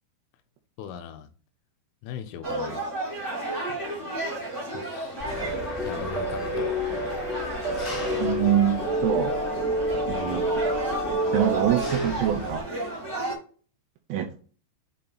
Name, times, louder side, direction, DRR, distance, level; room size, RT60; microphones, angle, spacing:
voice 1, 0.8-1.3 2.0-2.9 3.7-3.8 4.7-5.4 5.8-6.8, left 8 dB, 85° left, 3.3 m, -40 dB
sound 1, 2.4-13.3, right 1 dB, 15° right, 0.7 m, -33 dB
Engine, 5.2-12.6, left 3 dB, 40° left, 1.2 m, -38 dB
sound 2, 5.2-12.1, right 1 dB, 40° right, 1.4 m, -29 dB
voice 2, 8.2-9.3 10.1-10.6 11.3-12.7 14.1-14.4, right 10 dB, 80° right, 3.0 m, -25 dB
8.5 x 2.9 x 3.9 m
omnidirectional pair, 5.9 m